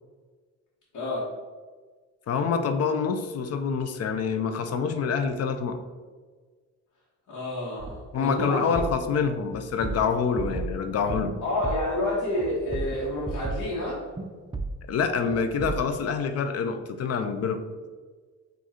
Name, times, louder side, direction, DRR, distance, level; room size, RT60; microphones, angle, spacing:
voice 1, 0.9-1.3 7.3-8.7 11.4-14.1, left 1 dB, 75° left, -8 dB, 1.3 m, -29 dB
voice 2, 2.3-5.8 8.1-11.3 14.9-17.6, left 6 dB, 55° left, 8 dB, 0.5 m, -26 dB
sound 1, 7.8-8.1 8.4-8.5 8.7-9.1 9.5-11.4 11.6-12.0 12.4-13.8 14.2-14.3 14.5-14.9 15.3-15.8, right 3 dB, 15° right, 0.4 m, -34 dB
4.7 x 2.7 x 4.3 m, 1.4 s
cardioid pair, 90°, 30 cm